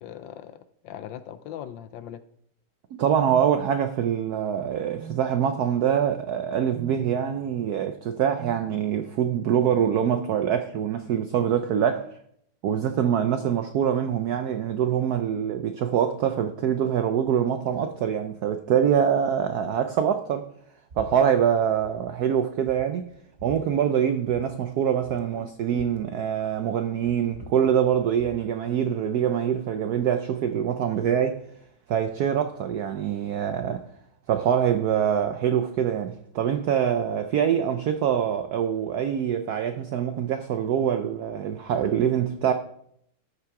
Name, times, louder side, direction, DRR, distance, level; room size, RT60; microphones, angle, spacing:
voice 1, 0.0-2.2 25.2-25.5, left 10 dB, 75° left, 1.1 m, -40 dB
voice 2, 3.0-12.2 12.6-20.5 21.0-23.0 23.4-31.4 31.9-33.9 34.3-42.5, right 8 dB, 80° right, 0.8 m, -24 dB
sound 1, 4.9-5.2 6.6-7.0 8.3-8.6, right 8 dB, 5° left, 2.6 m, -41 dB
sound 2, 20.9-21.1 21.4-21.9 22.3-22.4 22.7-23.6 24.2-24.5 24.7-24.8 25.0-26.7 27.0-28.4, right 2 dB, 40° right, 1.0 m, -45 dB
13.5 x 6.0 x 4.7 m
omnidirectional pair, 2.3 m